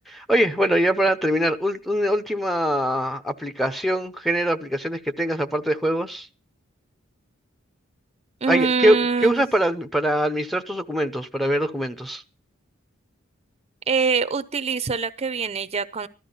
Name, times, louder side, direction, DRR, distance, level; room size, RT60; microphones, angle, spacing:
voice 1, 0.1-6.3 8.5-12.2, right 1 dB, ahead, 0.8 m, -23 dB
voice 2, 8.4-9.5 13.9-16.1, right 5 dB, 30° right, 0.7 m, -24 dB
15.0 x 12.5 x 5.6 m
head